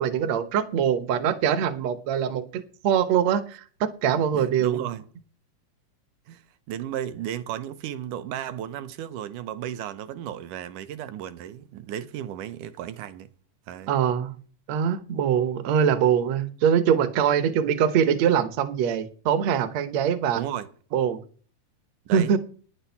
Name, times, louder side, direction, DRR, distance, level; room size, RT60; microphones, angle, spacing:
voice 1, 0.0-4.9 13.9-14.4 14.7-20.4 20.9-21.2 22.1-22.4, right 8 dB, 65° right, 2.1 m, -23 dB
voice 2, 4.3-5.1 6.3-6.4 6.7-13.3 13.7-13.9 20.4-20.7 22.1-22.4, right 11 dB, 80° right, 2.3 m, -34 dB
10.0 x 8.8 x 7.0 m
omnidirectional pair, 3.6 m